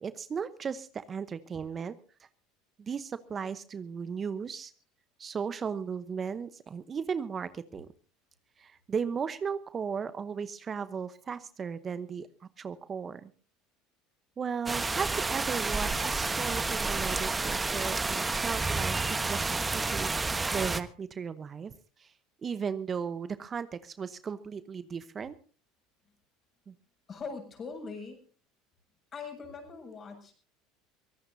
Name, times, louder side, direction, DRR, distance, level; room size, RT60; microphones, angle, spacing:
voice 1, 0.0-2.3 2.8-4.7 5.2-7.9 8.6-13.3 14.4-20.1 20.5-21.7 22.0-22.1 22.4-25.3 26.7-26.8, right 6 dB, 35° right, 14 dB, 0.9 m, -36 dB
sound 1, 14.7-20.8, right 3 dB, 20° right, 1.2 m, -30 dB
voice 2, 27.1-28.2 29.1-30.3, left 4 dB, 35° left, 3 dB, 7.1 m, -41 dB
23.5 x 17.5 x 2.7 m, 0.38 s
hypercardioid pair, 80°, 0 cm